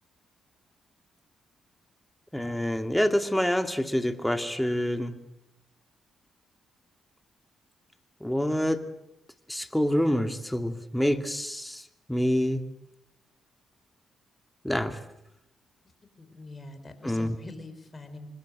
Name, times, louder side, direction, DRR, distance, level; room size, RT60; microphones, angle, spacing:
voice 1, 2.3-5.2 8.2-8.8 9.5-12.6 14.6-15.0 17.0-17.4, equal, 5° left, 7 dB, 2.5 m, -27 dB
voice 2, 16.2-18.3, left 2 dB, 35° left, 9 dB, 5.2 m, -44 dB
25.5 x 21.0 x 7.9 m, 0.86 s
supercardioid pair, 50°, 0 cm